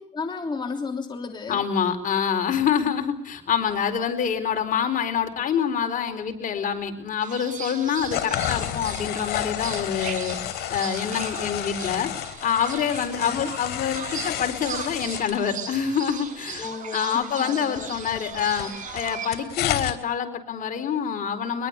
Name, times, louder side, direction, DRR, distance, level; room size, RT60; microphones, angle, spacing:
voice 1, 0.1-1.7 13.3-13.5 16.6-18.0, left 4 dB, 25° left, 2 dB, 3.3 m, -33 dB
voice 2, 1.5-10.4 10.7-12.1 12.4-21.7, left 8 dB, 50° left, 6 dB, 4.3 m, -26 dB
sound 1, 7.2-19.4, right 7 dB, 50° right, 7.0 m, -38 dB
tear papers up, 8.0-15.4 17.8-19.9, left 13 dB, 80° left, 3.3 m, -31 dB
23.5 x 22.0 x 8.2 m, 0.66 s
cardioid pair, 110°, 17 cm